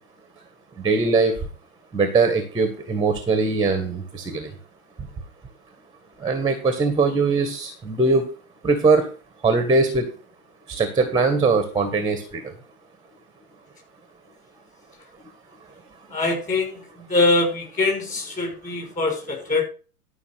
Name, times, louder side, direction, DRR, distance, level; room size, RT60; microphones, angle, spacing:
voice 1, 0.8-1.4 1.9-4.5 6.2-8.3 8.6-9.0 9.4-10.1 10.7-12.4, right 3 dB, 10° right, 8 dB, 1.8 m, -21 dB
voice 2, 16.1-19.6, left 2 dB, 15° left, 3 dB, 5.9 m, -23 dB
13.0 x 5.9 x 5.9 m, 0.36 s
hypercardioid pair, 120°, 44 cm